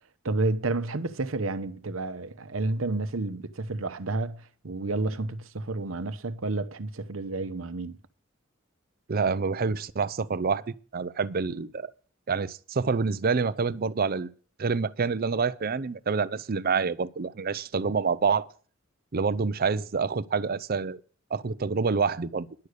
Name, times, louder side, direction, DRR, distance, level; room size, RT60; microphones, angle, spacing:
voice 1, 0.2-8.0, right 2 dB, 75° right, 0.9 m, -30 dB
voice 2, 9.1-11.9 12.3-14.3 14.6-18.5 19.1-21.0 21.3-22.5, right 5 dB, 45° right, 0.6 m, -27 dB
10.5 x 6.5 x 8.2 m
head